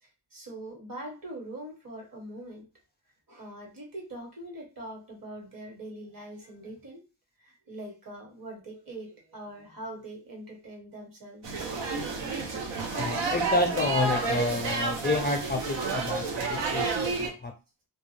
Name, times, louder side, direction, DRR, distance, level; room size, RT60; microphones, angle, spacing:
voice 1, 0.0-2.6 3.3-7.0 7.4-12.4, right 1 dB, 50° right, 0 dB, 1.2 m, -43 dB
sound 1, 11.4-17.3, right 3 dB, 90° right, 0.7 m, -30 dB
voice 2, 12.9-17.5, left 2 dB, 25° left, 3 dB, 0.4 m, -29 dB
2.3 x 2.3 x 3.1 m, 0.32 s
wide cardioid pair, 105°, 42 cm